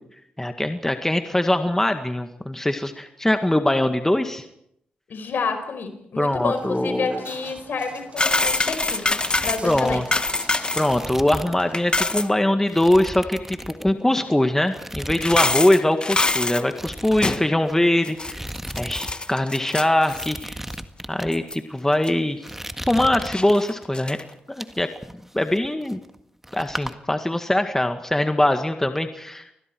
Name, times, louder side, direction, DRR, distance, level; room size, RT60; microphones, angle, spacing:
voice 1, 0.4-4.5 6.2-7.2 9.6-10.0 10.8-18.5 18.8-20.6 21.1-22.4 22.9-24.2 24.5-24.9 25.3-26.0 26.5-29.4, left 1 dB, 10° left, 7 dB, 1.8 m, -22 dB
voice 2, 5.1-10.0, left 4 dB, 70° left, 7 dB, 5.0 m, -29 dB
Walk footsteps, 6.5-12.3, right 2 dB, 35° right, 6.7 m, -43 dB
sound 1, 8.2-10.9 11.2-11.3 11.6-12.3 14.2-14.3 15.1-16.6 17.2-17.5 18.0-20.4 20.7-20.8 21.3-21.5 22.0-22.1 23.2-24.2, left 2 dB, 25° left, 1.5 m, -24 dB
sound 2, 8.2-8.7 9.0-11.7 12.1-12.3 12.7-14.3 14.7-15.6 15.9-16.1 16.7-19.1 19.4-19.5 20.0-21.3 21.9-22.1 22.4-23.9 24.3-26.2 26.4-26.9, right 1 dB, 10° right, 1.7 m, -36 dB
30.0 x 20.5 x 4.7 m, 0.74 s
cardioid pair, 55°, 3 cm